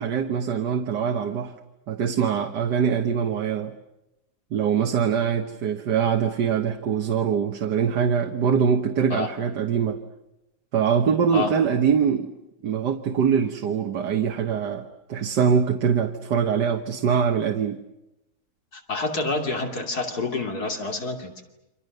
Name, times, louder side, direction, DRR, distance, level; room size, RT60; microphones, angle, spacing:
voice 1, 0.0-1.5 1.9-3.7 4.5-10.0 10.7-12.3 12.6-17.8, right 7 dB, 85° right, 5 dB, 1.9 m, -23 dB
voice 2, 18.7-21.4, left 3 dB, 65° left, 3 dB, 3.4 m, -28 dB
30.0 x 26.0 x 6.7 m, 0.92 s
omnidirectional pair, 1.8 m